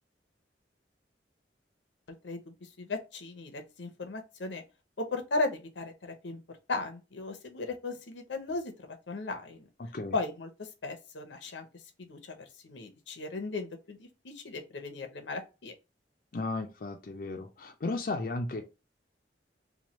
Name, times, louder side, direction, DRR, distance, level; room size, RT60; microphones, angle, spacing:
voice 1, 2.2-4.6 5.0-6.4 6.7-9.7 10.1-11.7 12.0-15.7, left 3 dB, 90° left, 0.7 m, -36 dB
voice 2, 9.8-10.1 16.3-18.6, left 2 dB, 50° left, 0.4 m, -34 dB
3.1 x 2.2 x 4.1 m
head